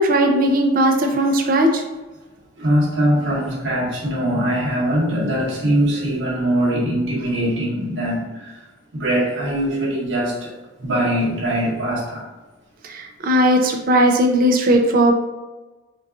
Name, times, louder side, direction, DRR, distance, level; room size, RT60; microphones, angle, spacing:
voice 1, 0.0-1.8 12.8-15.1, right 1 dB, 45° right, 2 dB, 0.4 m, -17 dB
voice 2, 2.6-8.6 8.9-10.5 10.8-12.2, right 1 dB, 70° right, -5 dB, 1.0 m, -22 dB
3.9 x 2.3 x 2.5 m, 1.2 s
head